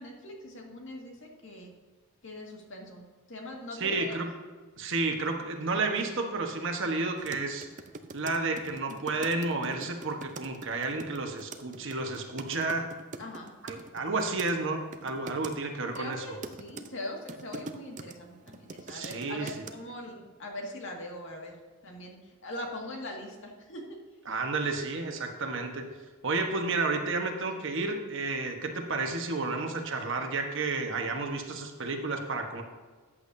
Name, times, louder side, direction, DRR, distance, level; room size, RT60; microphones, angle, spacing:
voice 1, 0.0-1.7 2.2-4.1 13.2-13.5 16.0-21.6 21.8-23.8, left 1 dB, 60° left, 0 dB, 2.0 m, -41 dB
voice 2, 3.8-4.3 4.8-7.7 8.1-12.9 13.6-16.2 18.9-19.6 24.3-25.9 26.2-32.6, right 3 dB, 55° right, 4 dB, 1.2 m, -31 dB
sound 1, 7.2-14.5 14.9-15.6 16.0-18.1 18.5-19.7, right 3 dB, 35° right, 0.5 m, -43 dB
13.5 x 8.5 x 2.7 m, 1.4 s
head